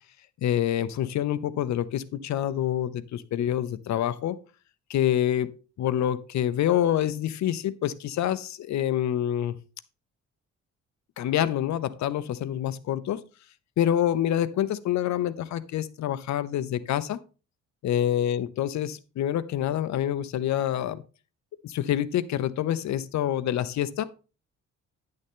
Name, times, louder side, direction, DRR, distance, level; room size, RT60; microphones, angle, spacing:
voice 1, 0.4-4.4 4.9-9.6 11.2-13.2 13.8-17.2 17.8-21.0 21.6-24.0, left 11 dB, 65° left, 0.7 m, -27 dB
9.6 x 6.6 x 3.6 m
cardioid pair, 90°, 30 cm